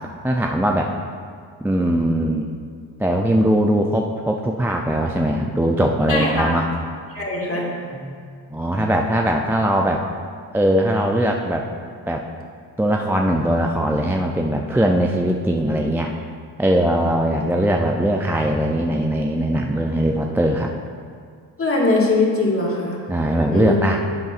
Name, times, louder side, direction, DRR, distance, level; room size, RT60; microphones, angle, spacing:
voice 1, 0.2-0.9 1.6-2.5 3.0-6.6 8.0-8.2 8.5-10.0 10.5-11.7 12.1-12.2 12.8-16.1 16.6-20.7 23.1-24.0, right 1 dB, 5° right, 1 dB, 0.4 m, -20 dB
voice 2, 6.1-6.5 7.1-7.7 21.6-23.0 23.5-23.8, left 2 dB, 30° left, -2 dB, 2.1 m, -21 dB
10.5 x 8.0 x 2.5 m, 2.1 s
supercardioid pair, 70°, 46 cm